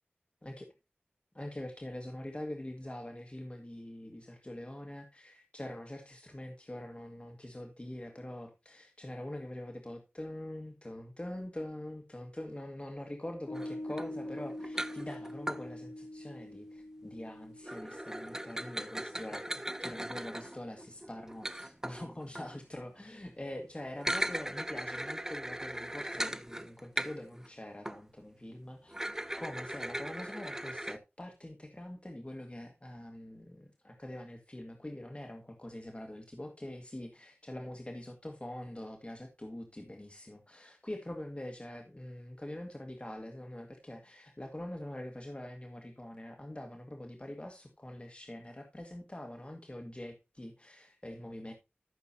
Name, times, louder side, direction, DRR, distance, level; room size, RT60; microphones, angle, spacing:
voice 1, 1.3-29.0 29.4-51.5, left 1 dB, 30° left, 1.8 m, -44 dB
Piano, 13.5-20.2, left 1 dB, 60° left, 1.6 m, -45 dB
sound 1, 13.5-15.6 17.6-22.6 23.9-27.5 27.8-28.0 28.9-31.0, right 1 dB, 15° right, 0.8 m, -39 dB
14.5 x 6.9 x 2.8 m
wide cardioid pair, 50°, 4 cm